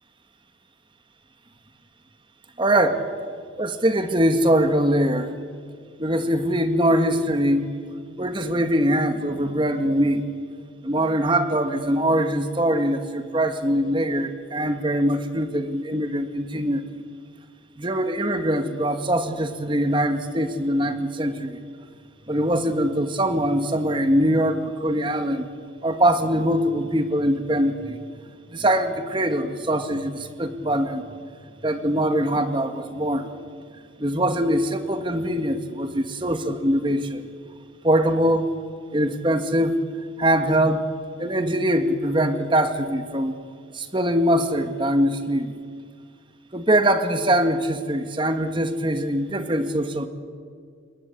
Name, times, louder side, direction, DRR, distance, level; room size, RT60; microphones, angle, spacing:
voice 1, 2.6-3.1 3.6-5.3 6.0-7.7 8.2-10.3 10.8-16.8 17.8-21.6 22.3-25.5 25.8-28.0 28.5-31.0 31.6-33.3 34.0-37.3 37.8-38.5 38.9-39.8 40.2-40.8 41.2-43.4 43.7-45.5 46.5-50.1, right 1 dB, 25° right, 8 dB, 1.8 m, -22 dB
28.0 x 22.0 x 8.6 m, 2.1 s
head